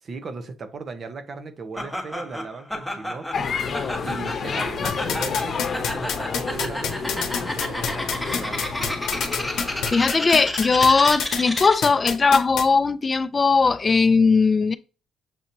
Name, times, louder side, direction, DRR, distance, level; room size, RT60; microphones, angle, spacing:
voice 1, 0.0-3.5 4.0-8.7, right 4 dB, 50° right, 0.9 m, -37 dB
Laughter, 1.8-12.0, left 1 dB, 5° left, 1.2 m, -32 dB
sound 1, 3.3-9.9, left 5 dB, 50° left, 0.8 m, -30 dB
sound 2, 4.8-12.6, left 7 dB, 80° left, 0.8 m, -26 dB
voice 2, 9.9-14.8, left 4 dB, 30° left, 0.4 m, -19 dB
6.8 x 2.8 x 2.7 m
cardioid pair, 90°, 0 cm